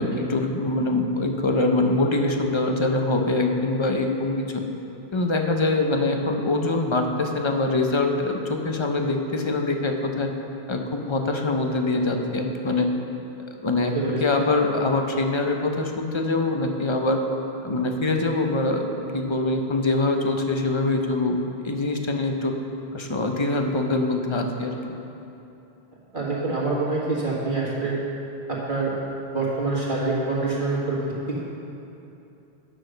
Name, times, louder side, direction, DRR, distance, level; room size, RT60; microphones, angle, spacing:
voice 1, 0.0-4.6 5.1-10.3 10.7-12.9 13.6-13.9 14.2-17.2 17.6-18.9 19.1-21.4 21.6-22.5 22.9-24.8, left 2 dB, 30° left, 3 dB, 0.7 m, -24 dB
voice 2, 26.1-28.0 28.5-29.0 29.3-31.0 31.3-31.4, right 3 dB, 50° right, -6 dB, 2.0 m, -26 dB
9.1 x 6.3 x 6.4 m, 2.9 s
omnidirectional pair, 1.1 m